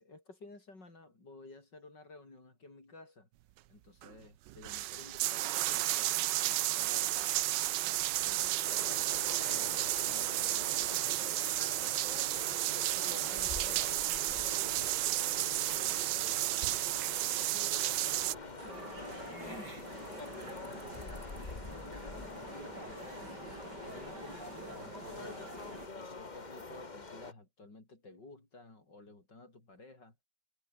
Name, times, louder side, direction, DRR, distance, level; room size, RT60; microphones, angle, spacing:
voice 1, 0.0-3.3 3.7-7.3 7.8-12.0 12.6-16.7 17.2-19.8 20.3-23.3 23.8-25.5 26.0-30.1, left 2 dB, 75° left, 6.6 m, -53 dB
sound 1, 4.0-4.1 4.5-18.3, right 15 dB, 85° right, 1.3 m, -32 dB
sound 2, 8.6-27.3, left 3 dB, 25° left, 1.7 m, -46 dB
sound 3, 18.6-25.9, right 2 dB, 70° right, 7.3 m, -47 dB
omnidirectional pair, 1.9 m